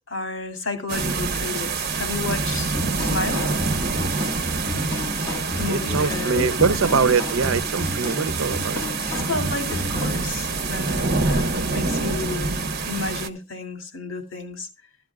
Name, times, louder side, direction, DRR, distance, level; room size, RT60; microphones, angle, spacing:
voice 1, 0.1-3.4 5.6-7.2 9.1-14.7, left 3 dB, 70° left, 2.5 m, -32 dB
sound 1, 0.9-13.3, right 3 dB, 50° right, 1.1 m, -26 dB
sound 2, 2.5-10.2, left 1 dB, 10° left, 6.5 m, -32 dB
voice 2, 5.7-8.8, right 5 dB, 85° right, 0.6 m, -23 dB
14.5 x 12.5 x 2.3 m
head